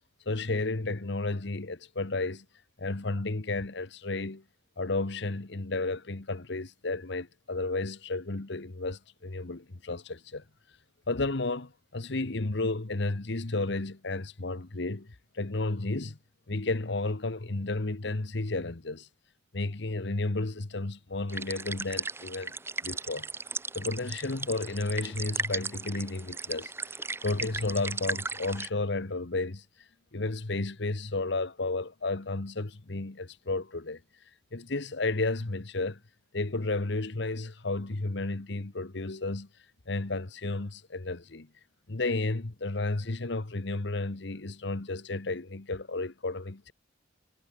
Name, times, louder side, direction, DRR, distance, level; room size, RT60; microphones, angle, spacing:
voice 1, 0.3-2.4 2.8-4.4 4.8-10.4 11.1-16.2 16.5-19.1 19.5-22.5 22.8-23.3 23.7-26.7 27.2-29.6 30.1-34.0 34.5-36.0 36.3-39.5 39.9-41.5 41.9-46.7, left 2 dB, 65° left, 1.2 m, -32 dB
sound 1, 21.3-28.7, right 4 dB, 15° right, 0.4 m, -36 dB
head